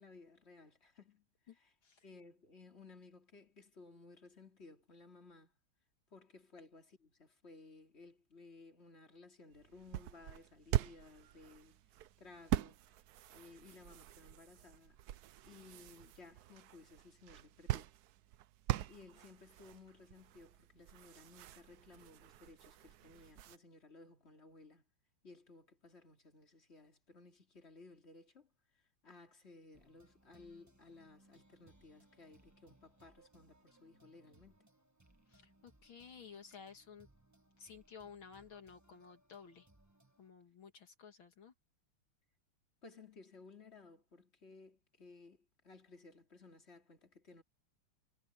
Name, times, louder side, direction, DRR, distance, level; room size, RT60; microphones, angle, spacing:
voice 1, 0.0-1.7 2.0-5.5 6.1-11.8 12.2-12.8 13.3-15.0 15.5-17.9 18.9-24.8 25.2-28.5 29.0-34.6 42.8-47.4, left 3 dB, 30° left, 3.0 m, -58 dB
sound 1, 9.5-23.6, right 14 dB, 75° right, 0.8 m, -43 dB
sound 2, 29.7-40.3, right 1 dB, 10° right, 1.0 m, -68 dB
voice 2, 35.3-37.1 37.6-39.7 40.2-41.5, left 6 dB, 65° left, 2.6 m, -54 dB
omnidirectional pair, 2.4 m